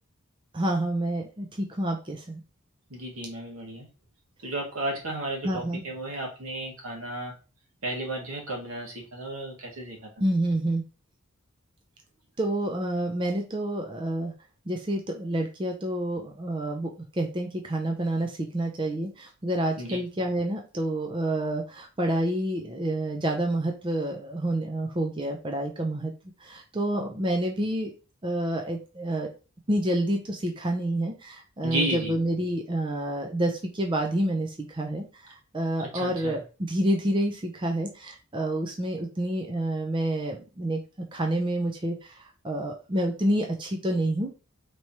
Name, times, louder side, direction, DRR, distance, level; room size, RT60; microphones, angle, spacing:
voice 1, 0.5-2.4 5.4-5.8 10.2-10.8 12.4-14.3 14.7-26.1 26.4-27.9 28.2-29.3 29.7-36.4 36.7-40.8 41.1-44.3, right 1 dB, 20° right, 2 dB, 0.5 m, -28 dB
voice 2, 2.9-3.9 4.4-7.3 7.8-10.1 19.8-20.0 31.6-32.1 35.8-36.4, right 1 dB, 85° right, -1 dB, 1.5 m, -33 dB
4.5 x 3.1 x 2.7 m, 0.33 s
head